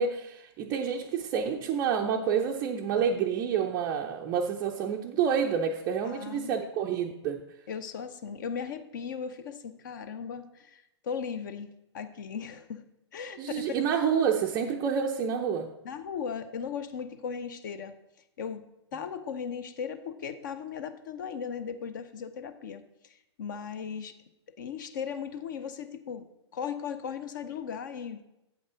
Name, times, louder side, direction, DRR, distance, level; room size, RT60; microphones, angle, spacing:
voice 1, 0.0-7.4 13.4-15.7, right 7 dB, 20° right, 0 dB, 0.4 m, -28 dB
voice 2, 6.0-6.5 7.7-12.8 13.1-13.8 15.8-17.9 18.4-18.6 18.9-24.2 24.6-26.3 26.5-28.2, left 7 dB, 45° left, 11 dB, 0.6 m, -37 dB
7.9 x 5.4 x 4.9 m, 0.90 s
figure-of-eight pair, 120°, 15 cm